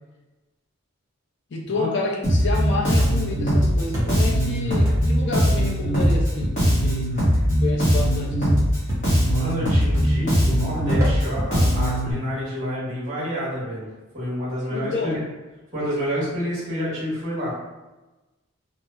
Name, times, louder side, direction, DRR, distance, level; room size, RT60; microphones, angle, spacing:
voice 1, 1.5-7.2 7.6-8.7 14.7-15.2, left 3 dB, 50° left, -1 dB, 0.4 m, -29 dB
Bass guitar, 2.2-12.1, equal, 35° left, 0.8 m, -20 dB
sound 1, 3.0-3.4 3.9-4.4 4.8-5.3 6.0-6.4 7.2-7.4 8.9-9.2 9.9-10.3 11.0-11.2 11.9-12.2, equal, 15° right, 0.4 m, -32 dB
voice 2, 9.2-13.9 14.1-15.1 15.7-17.6, equal, 35° right, -8 dB, 1.1 m, -28 dB
2.8 x 2.0 x 2.2 m, 1.1 s
head